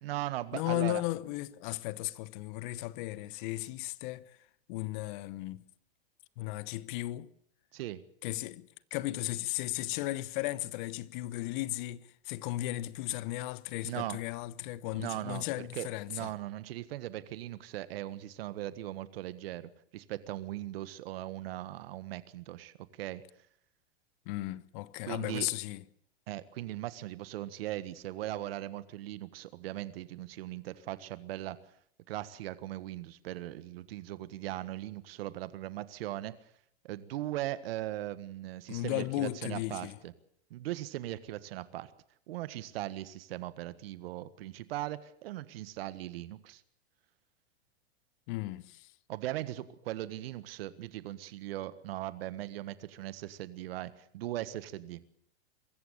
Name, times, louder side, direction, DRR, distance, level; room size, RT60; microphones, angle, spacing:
voice 1, 0.0-1.0 7.7-8.0 13.8-14.2 15.0-23.2 25.0-25.5 26.3-31.6 32.1-36.3 36.8-40.1 40.5-41.9 42.3-46.6 49.1-55.0, right 14 dB, 65° right, 1.6 m, -39 dB
voice 2, 0.5-4.4 4.7-5.6 6.4-7.3 8.2-16.3 24.3-25.8 38.7-40.0 48.3-48.9, left 17 dB, 50° left, 1.0 m, -35 dB
23.5 x 14.5 x 8.5 m
hypercardioid pair, 125°, 32 cm